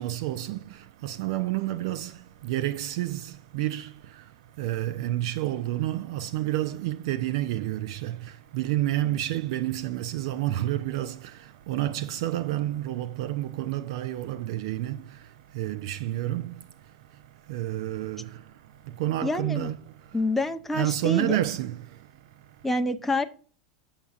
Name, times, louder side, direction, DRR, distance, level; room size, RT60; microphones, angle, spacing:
voice 1, 0.0-20.3 20.7-22.8, right 14 dB, 65° right, 0.4 m, -30 dB
voice 2, 19.2-19.7 20.1-21.4 22.6-23.3, left 2 dB, 5° left, 0.5 m, -27 dB
7.2 x 6.9 x 2.3 m
hypercardioid pair, 95°, 3 cm